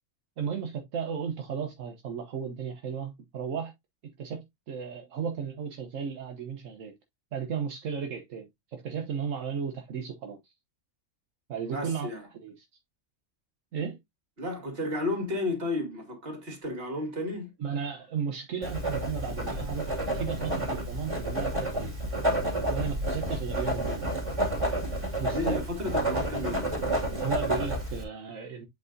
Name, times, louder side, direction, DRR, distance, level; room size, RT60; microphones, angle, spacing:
voice 1, 0.4-3.7 4.2-6.9 7.3-10.5 11.5-12.1 12.4-12.7 13.7-14.0 17.6-22.0 22.7-24.1 25.2-25.6 27.1-28.7, right 7 dB, 75° right, 1.3 m, -35 dB
voice 2, 11.7-12.2 14.4-17.5 25.2-26.7, left 2 dB, 50° right, 2.4 m, -32 dB
Writing, 18.6-28.0, right 1 dB, 25° right, 2.3 m, -30 dB
7.9 x 4.8 x 2.6 m
omnidirectional pair, 1.3 m